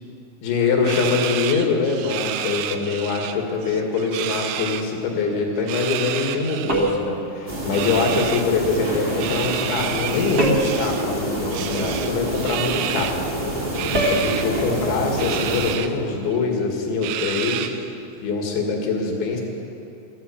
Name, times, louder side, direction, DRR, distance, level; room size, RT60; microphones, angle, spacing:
voice 1, 0.4-13.2 13.9-17.7 18.2-19.4, left 4 dB, 80° left, 1 dB, 4.3 m, -23 dB
sound 1, 0.8-3.4 3.6-4.8 5.6-6.9 7.7-8.5 9.2-11.1 11.5-13.2 13.7-14.5 15.2-15.9 16.3-16.4 17.0-17.9, right 11 dB, 85° right, 2.8 m, -30 dB
sound 2, 6.7-7.2 10.4-10.8 13.9-14.3, right 1 dB, 70° right, 0.9 m, -22 dB
sound 3, 7.5-15.8, right 1 dB, 40° right, 0.8 m, -28 dB
14.0 x 11.5 x 8.5 m, 2.6 s
omnidirectional pair, 5.2 m